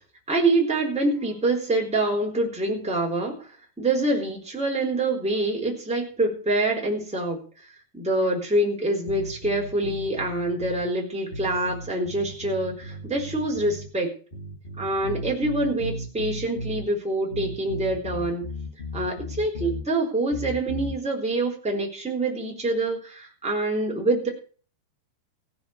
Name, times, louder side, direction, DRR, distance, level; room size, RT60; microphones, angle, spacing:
voice 1, 0.3-3.5 3.8-7.7 7.9-14.1 14.8-18.4 18.9-24.3, right 2 dB, ahead, 0 dB, 3.2 m, -26 dB
sound 1, 9.1-10.9 11.3-13.9 14.3-16.9 17.3-19.9 20.3-21.0, left 1 dB, 55° left, 0.6 m, -36 dB
16.5 x 7.0 x 6.7 m, 0.39 s
omnidirectional pair, 5.1 m